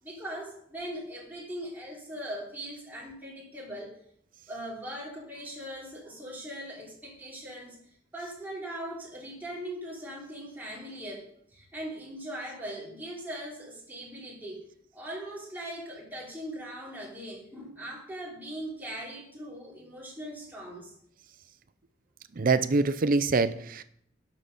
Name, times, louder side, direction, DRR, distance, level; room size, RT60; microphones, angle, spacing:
voice 1, 0.0-4.0 4.5-7.8 8.1-14.6 14.9-20.9, right 1 dB, 10° right, -4 dB, 3.5 m, -40 dB
voice 2, 22.4-23.8, right 3 dB, 50° right, 12 dB, 0.6 m, -24 dB
11.5 x 6.3 x 5.5 m, 0.67 s
head